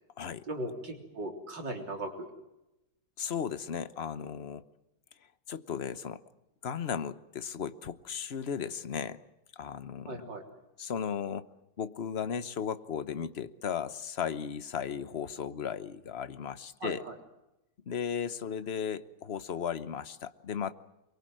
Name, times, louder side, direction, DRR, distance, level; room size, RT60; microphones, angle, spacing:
voice 1, 0.5-2.3 10.1-10.4 16.8-17.1, right 1 dB, 75° right, 3 dB, 4.3 m, -38 dB
voice 2, 3.2-4.6 5.5-6.2 6.6-9.2 9.6-10.3 10.8-11.5 11.8-17.0 17.9-20.7, left 7 dB, 40° left, 12 dB, 1.0 m, -35 dB
24.0 x 23.5 x 7.7 m, 0.92 s
omnidirectional pair, 2.0 m